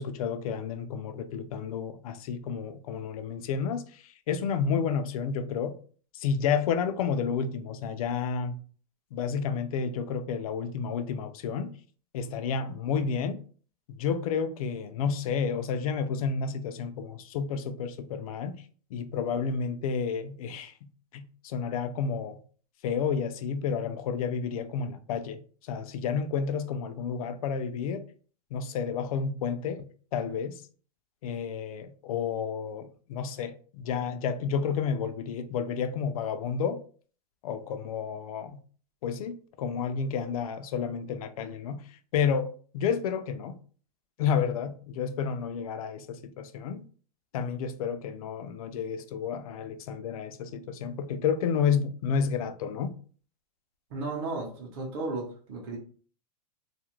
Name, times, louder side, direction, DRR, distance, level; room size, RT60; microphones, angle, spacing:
voice 1, 0.0-5.7 6.1-8.5 9.1-11.7 12.1-13.4 14.0-18.5 18.9-20.7 21.1-22.4 22.8-25.4 25.7-28.0 28.5-29.9 30.1-30.6 31.2-36.8 37.4-38.6 39.0-41.8 42.1-43.6 44.2-46.8 47.3-52.9, left 6 dB, 60° left, 0.4 m, -30 dB
voice 2, 53.9-55.8, right 3 dB, 40° right, 0.7 m, -34 dB
2.4 x 2.1 x 3.0 m
supercardioid pair, 160°, 21 cm